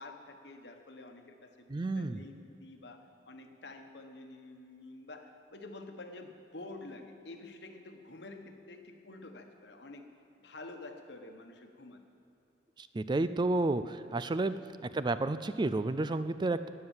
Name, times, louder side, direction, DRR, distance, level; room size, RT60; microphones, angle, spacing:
voice 1, 0.0-10.1 10.4-12.0 14.6-14.7, left 2 dB, 70° left, 5 dB, 1.3 m, -49 dB
voice 2, 1.7-2.2 12.8-14.5 14.9-16.7, right 2 dB, 25° right, 12 dB, 0.4 m, -31 dB
19.5 x 7.8 x 7.3 m, 2.8 s
head